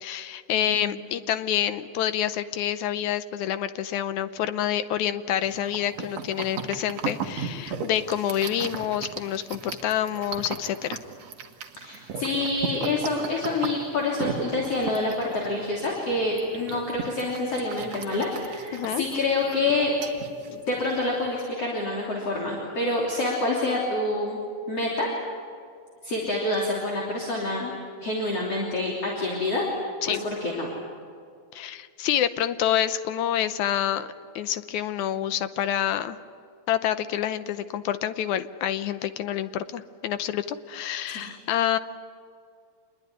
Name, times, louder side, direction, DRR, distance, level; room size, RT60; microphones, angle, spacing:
voice 1, 0.0-11.0 18.7-19.0 30.0-30.2 31.5-34.1 34.4-36.2 36.7-41.8, left 10 dB, 70° left, 12 dB, 2.0 m, -27 dB
voice 2, 0.5-1.0 11.8-19.9 20.5-24.4 24.7-25.1 26.0-27.7 28.0-29.6 30.1-30.7 41.1-41.3, left 2 dB, 45° left, -2 dB, 4.1 m, -27 dB
sound 1, 5.4-21.2, right 6 dB, 55° right, 2.5 m, -36 dB
27.5 x 21.5 x 9.7 m, 2.3 s
omnidirectional pair, 3.9 m